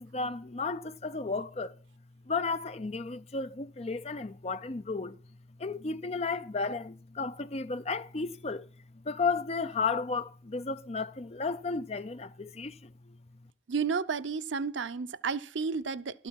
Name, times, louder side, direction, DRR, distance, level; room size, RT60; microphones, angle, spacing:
voice 1, 0.0-1.7 2.3-5.2 5.6-8.7 9.0-12.9, left 4 dB, 35° left, 0.5 m, -33 dB
voice 2, 13.7-16.3, right 5 dB, 85° right, 0.7 m, -32 dB
13.0 x 13.0 x 4.7 m
head